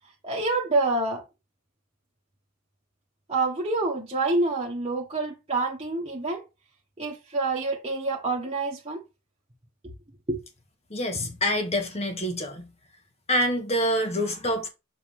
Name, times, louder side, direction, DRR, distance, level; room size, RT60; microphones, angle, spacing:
voice 1, 0.2-1.2 3.3-6.4 7.0-9.0 10.3-10.4, right 3 dB, 25° right, 1.5 m, -27 dB
voice 2, 10.9-12.6 13.3-14.7, equal, 30° left, 1.7 m, -26 dB
6.7 x 5.1 x 3.6 m
head